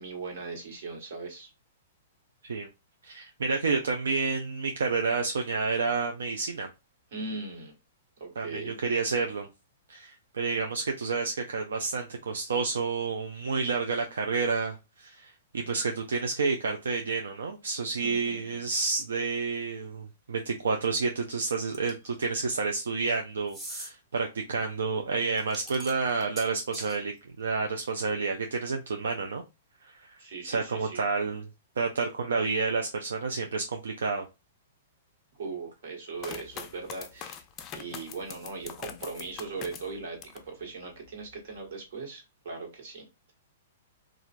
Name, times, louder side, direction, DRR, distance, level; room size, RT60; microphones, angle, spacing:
voice 1, 0.0-1.5 7.1-7.7 8.2-8.7 18.0-18.6 30.2-31.1 35.4-37.4 37.7-43.3, right 4 dB, 65° right, 1.4 m, -39 dB
voice 2, 3.0-6.7 8.4-9.5 9.9-29.4 29.8-30.1 30.4-31.5 31.8-34.3, right 4 dB, 85° right, 0.4 m, -30 dB
sound 1, 21.7-22.1 23.5-23.9 25.4-27.0, right 1 dB, 20° right, 0.9 m, -41 dB
sound 2, 36.2-40.5 40.9-41.6, left 8 dB, 30° left, 0.4 m, -43 dB
3.0 x 2.4 x 2.4 m
hypercardioid pair, 135°, 0 cm